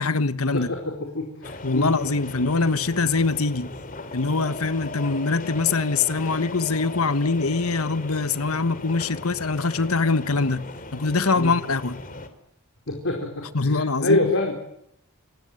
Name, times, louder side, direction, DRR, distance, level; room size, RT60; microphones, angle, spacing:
voice 1, 0.0-0.7 1.6-3.7 4.1-10.7 10.9-12.0 13.5-14.3, left 3 dB, 85° left, 1.4 m, -23 dB
voice 2, 0.5-1.9 11.4-11.5 12.9-14.5, left 2 dB, 65° left, 4.9 m, -26 dB
sound 1, 1.4-12.3, left 2 dB, 40° left, 3.2 m, -37 dB
27.5 x 19.5 x 9.5 m
head